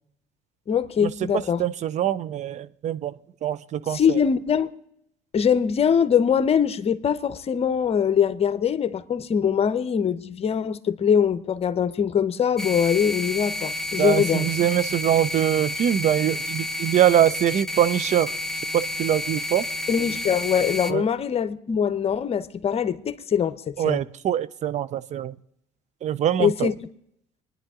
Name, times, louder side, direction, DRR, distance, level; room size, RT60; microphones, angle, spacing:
voice 1, 0.7-1.6 3.9-4.7 5.3-14.5 19.9-24.0 26.4-26.7, left 7 dB, 40° left, 0.9 m, -22 dB
voice 2, 1.6-3.1 3.4-4.2 14.0-18.3 18.7-19.7 20.9-21.0 23.8-25.3 26.0-26.7, right 10 dB, 50° right, 0.6 m, -23 dB
sound 1, 12.6-20.9, left 1 dB, 5° left, 0.8 m, -30 dB
24.5 x 10.5 x 3.7 m
hypercardioid pair, 70°, 15 cm